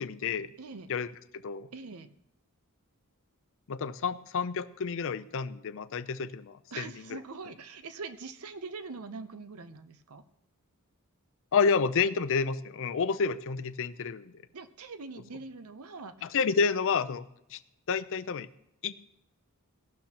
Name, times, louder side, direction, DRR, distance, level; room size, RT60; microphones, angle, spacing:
voice 1, 0.0-0.5 0.9-1.7 3.7-7.2 11.5-14.4 16.2-17.6 17.9-18.5 18.8-19.0, left 5 dB, 65° left, 14 dB, 0.5 m, -30 dB
voice 2, 0.6-0.9 1.7-2.1 6.7-10.2 14.5-16.4, right 4 dB, 75° right, 11 dB, 0.7 m, -43 dB
16.0 x 12.0 x 2.9 m, 0.81 s
head